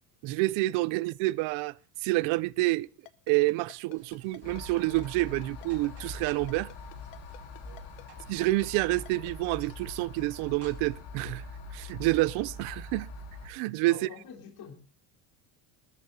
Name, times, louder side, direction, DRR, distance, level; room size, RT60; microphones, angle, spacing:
voice 1, 0.2-1.7 2.0-2.9 3.3-6.7 8.3-11.4 11.7-13.1 13.4-14.0, right 20 dB, 70° right, 0.6 m, -28 dB
Ringtone, 3.1-9.7, left 19 dB, 80° left, 1.1 m, -50 dB
sound 1, 3.9-11.0, right 3 dB, 30° right, 4.1 m, -57 dB
sound 2, 4.4-13.5, left 2 dB, 60° left, 3.9 m, -43 dB
voice 2, 13.8-14.8, left 6 dB, 45° left, 3.8 m, -46 dB
25.0 x 13.5 x 2.7 m
cardioid pair, 150°, 50 cm